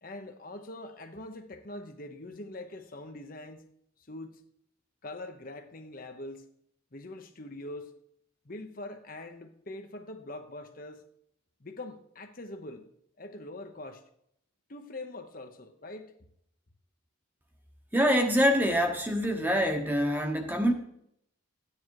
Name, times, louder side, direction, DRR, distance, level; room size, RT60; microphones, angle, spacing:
voice 1, 0.0-3.6 4.1-4.4 5.0-6.5 6.9-7.9 8.4-11.0 11.6-12.9 13.2-14.0 14.7-16.1, left 2 dB, 45° left, 0.9 m, -43 dB
voice 2, 17.9-20.7, equal, 10° right, 1.1 m, -25 dB
13.5 x 9.7 x 4.8 m
head